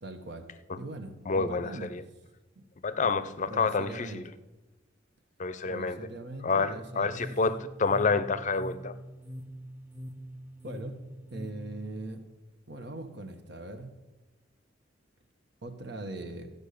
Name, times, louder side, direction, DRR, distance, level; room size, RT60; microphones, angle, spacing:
voice 1, 0.0-1.9 2.5-2.6 3.0-4.2 5.6-7.2 10.6-10.9 11.3-12.2 12.7-13.9 15.6-16.5, right 2 dB, 65° right, 6 dB, 1.4 m, -41 dB
voice 2, 1.3-2.0 2.8-4.2 5.4-6.0 6.4-8.9, left 4 dB, 40° left, 14 dB, 0.6 m, -28 dB
sound 1, 6.7-11.9, equal, 10° right, 0.9 m, -44 dB
14.0 x 5.4 x 8.5 m, 1.1 s
head